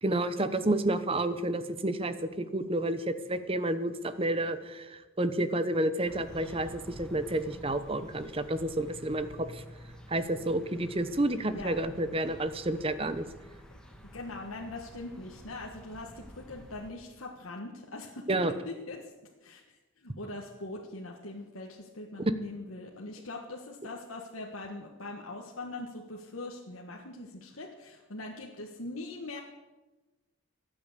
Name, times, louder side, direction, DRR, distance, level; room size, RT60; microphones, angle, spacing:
voice 1, 0.0-9.6 10.1-13.3 18.3-18.5, right 1 dB, 25° right, 12 dB, 0.9 m, -30 dB
sound 1, 6.0-16.9, equal, 5° left, 1.6 m, -50 dB
voice 2, 14.1-18.3 18.6-19.1 19.4-29.4, left 2 dB, 80° left, -1 dB, 1.5 m, -42 dB
22.5 x 8.8 x 6.8 m, 1.2 s
head